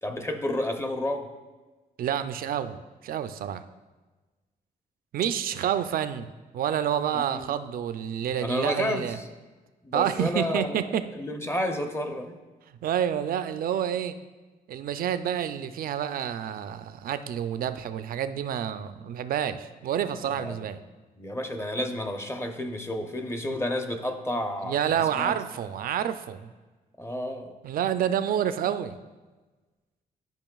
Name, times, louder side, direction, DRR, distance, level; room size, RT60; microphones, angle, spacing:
voice 1, 0.0-1.3 7.1-7.5 8.4-9.2 9.8-12.4 20.3-20.7 21.2-25.3 27.0-27.6, left 1 dB, 15° left, 6 dB, 0.5 m, -31 dB
voice 2, 2.0-3.6 5.1-9.2 9.9-11.0 12.8-14.1 14.7-20.8 24.6-26.5 27.6-29.0, right 9 dB, 65° right, 11 dB, 0.4 m, -28 dB
11.0 x 5.2 x 2.3 m, 1.2 s
cardioid pair, 105°, 16 cm